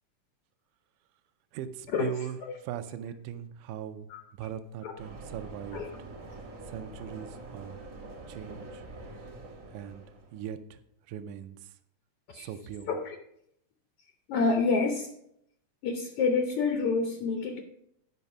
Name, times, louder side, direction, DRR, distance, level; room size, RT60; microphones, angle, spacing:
voice 1, 1.5-2.4 2.6-4.1 4.4-5.8 6.7-7.8 8.3-8.8 9.7-10.0 10.3-10.8 11.1-11.6 12.3-12.9, right 9 dB, 75° right, 9 dB, 2.0 m, -39 dB
sound 1, 5.0-10.5, right 2 dB, 50° right, 1.5 m, -45 dB
voice 2, 14.3-15.1 15.8-17.6, left 4 dB, 90° left, 4 dB, 1.2 m, -28 dB
9.3 x 5.4 x 5.8 m, 0.74 s
omnidirectional pair, 3.8 m